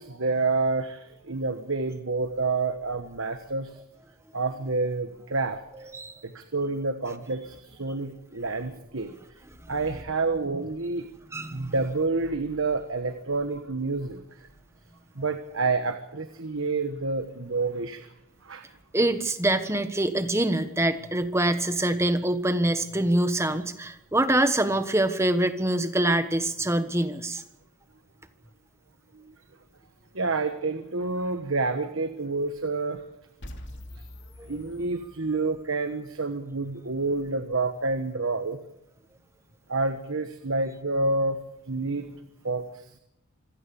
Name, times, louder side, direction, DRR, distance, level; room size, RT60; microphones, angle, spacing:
voice 1, 0.0-3.8 4.3-5.9 6.2-9.1 9.7-11.1 11.5-14.5 15.1-18.1 18.4-18.7 29.1-29.3 30.1-33.0 33.9-34.0 34.5-38.6 39.7-41.4 41.7-42.1 42.4-43.0, right 3 dB, 60° right, 8 dB, 1.3 m, -28 dB
voice 2, 11.3-11.7 18.9-27.4 34.4-34.5, right 1 dB, 10° right, 10 dB, 1.2 m, -25 dB
sound 1, 33.4-35.5, left 1 dB, 55° left, 2.8 m, -44 dB
26.0 x 16.5 x 7.0 m, 0.83 s
head